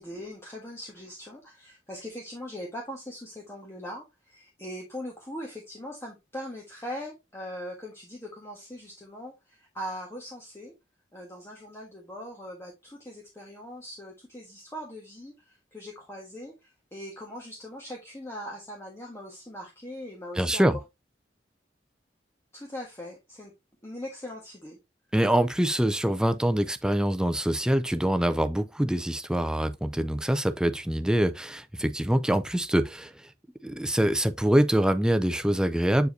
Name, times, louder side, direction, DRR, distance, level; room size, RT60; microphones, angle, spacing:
voice 1, 0.0-10.7 11.1-20.6 22.5-23.5 23.8-24.8, equal, 15° left, 1.5 m, -41 dB
voice 2, 20.4-20.8 25.1-33.3 33.6-36.1, right 1 dB, 5° right, 0.4 m, -25 dB
8.0 x 4.8 x 2.7 m
head